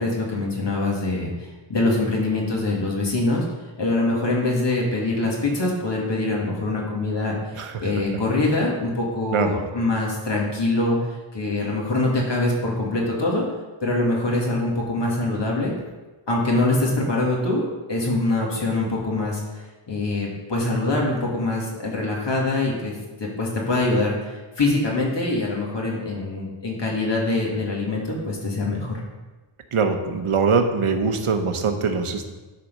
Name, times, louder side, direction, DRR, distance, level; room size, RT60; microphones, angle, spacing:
voice 1, 0.0-3.4 3.8-7.4 7.8-13.4 13.8-15.7 16.3-29.0, left 2 dB, 55° left, -2 dB, 2.3 m, -24 dB
voice 2, 29.7-32.3, right 5 dB, 85° right, 6 dB, 1.0 m, -22 dB
12.0 x 4.3 x 5.4 m, 1.2 s
wide cardioid pair, 125°, 49 cm